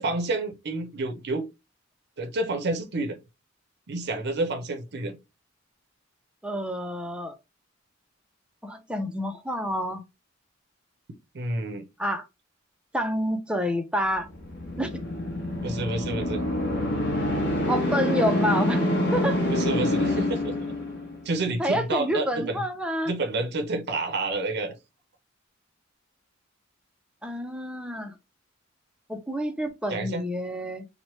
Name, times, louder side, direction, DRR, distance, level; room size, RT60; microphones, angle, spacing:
voice 1, 0.0-1.5 2.2-3.2 3.9-5.2 11.3-11.8 15.6-16.5 19.5-20.6 21.3-22.6 23.1-24.7 29.9-30.2, right 2 dB, 55° right, 0.5 m, -29 dB
voice 2, 6.4-7.4 8.6-10.0 12.0-12.3 12.9-14.3 14.8-15.0 17.7-19.4 21.6-23.1 27.2-28.1 29.1-30.9, equal, 5° right, 0.4 m, -28 dB
sound 1, 14.3-21.3, left 1 dB, 55° left, 0.9 m, -26 dB
3.0 x 2.1 x 2.9 m
head